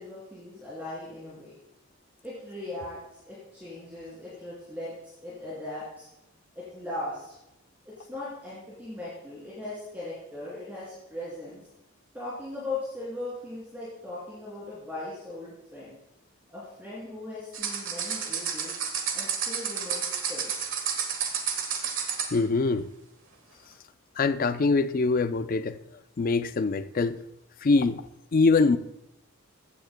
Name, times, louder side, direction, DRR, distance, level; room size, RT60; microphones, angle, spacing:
voice 1, 0.0-1.6 2.2-6.1 6.5-7.3 7.8-11.6 12.1-16.0 16.5-18.8 19.1-20.5, left 2 dB, 10° right, 2.9 m, -39 dB
sound 1, 17.5-22.4, right 7 dB, 65° right, 1.5 m, -31 dB
voice 2, 22.3-22.9 24.2-25.8 26.2-27.2 27.6-28.0 28.3-28.8, left 3 dB, 40° left, 0.4 m, -23 dB
15.5 x 9.1 x 2.2 m
head